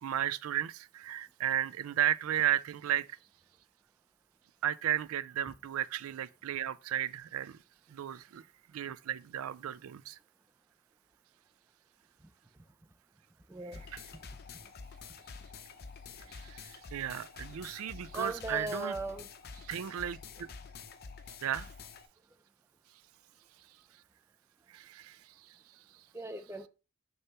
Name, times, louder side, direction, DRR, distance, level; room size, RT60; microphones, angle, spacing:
voice 1, 0.0-3.1 4.6-7.6 7.9-8.4 8.7-10.2 13.6-14.0 16.3-19.0 19.6-20.5 21.4-21.7 24.7-25.6, right 11 dB, 85° right, 0.4 m, -34 dB
voice 2, 13.5-13.8 18.1-19.3 26.1-26.7, right 2 dB, 10° right, 0.5 m, -38 dB
sound 1, 13.7-22.1, left 5 dB, 45° left, 0.6 m, -48 dB
6.6 x 2.9 x 5.6 m
head